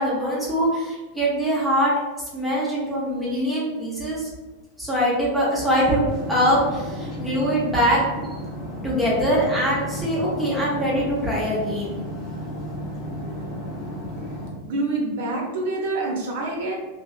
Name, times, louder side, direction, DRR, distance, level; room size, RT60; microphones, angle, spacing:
voice 1, 0.0-1.9 2.3-4.3 4.8-8.0 8.8-11.9, equal, ahead, -7 dB, 0.8 m, -23 dB
sound 1, 6.1-14.5, equal, 30° left, 0.9 m, -33 dB
voice 2, 14.6-16.7, right 2 dB, 50° right, -1 dB, 0.8 m, -26 dB
3.0 x 2.7 x 2.3 m, 1.2 s
figure-of-eight pair, 90°, 0 cm